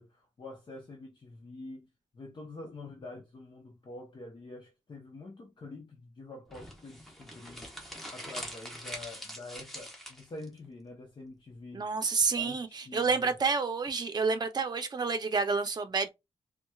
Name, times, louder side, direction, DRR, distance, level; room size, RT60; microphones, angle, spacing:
voice 1, 0.0-7.7 8.1-11.9 12.3-13.4, left 2 dB, 45° left, 0.9 m, -46 dB
sound 1, 6.5-10.5, equal, ahead, 1.0 m, -43 dB
voice 2, 11.7-16.1, right 4 dB, 40° right, 0.6 m, -29 dB
4.2 x 2.2 x 2.3 m
wide cardioid pair, 120°, 11 cm